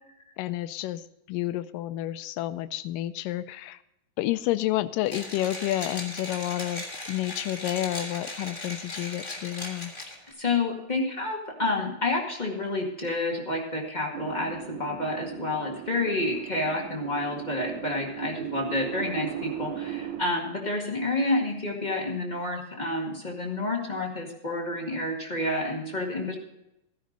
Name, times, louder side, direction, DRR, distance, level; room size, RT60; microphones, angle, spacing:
voice 1, 0.4-1.0 1.3-3.8 4.2-9.9, left 14 dB, 80° left, 13 dB, 2.1 m, -30 dB
Mechanisms, 5.1-10.3, left 1 dB, 10° left, 2.3 m, -38 dB
voice 2, 10.4-26.3, left 2 dB, 25° left, -1 dB, 1.0 m, -29 dB
sound 1, 14.1-20.2, right 11 dB, 75° right, 1.6 m, -38 dB
15.0 x 10.5 x 4.0 m, 0.88 s
omnidirectional pair, 4.1 m